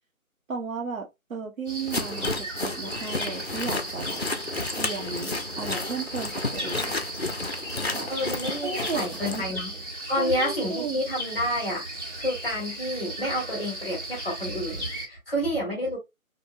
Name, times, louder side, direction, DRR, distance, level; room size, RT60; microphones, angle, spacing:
voice 1, 0.5-4.2 4.8-7.0 7.9-8.1 8.6-9.6 10.2-11.0, right 5 dB, 70° right, 1.3 m, -35 dB
sound 1, 1.7-15.1, right 1 dB, 55° right, 1.7 m, -36 dB
sound 2, 1.9-9.4, left 2 dB, 50° left, 0.4 m, -32 dB
voice 2, 8.1-9.7 10.1-11.8 12.2-16.0, equal, ahead, 1.3 m, -29 dB
2.7 x 2.6 x 2.5 m
figure-of-eight pair, 170°, 43 cm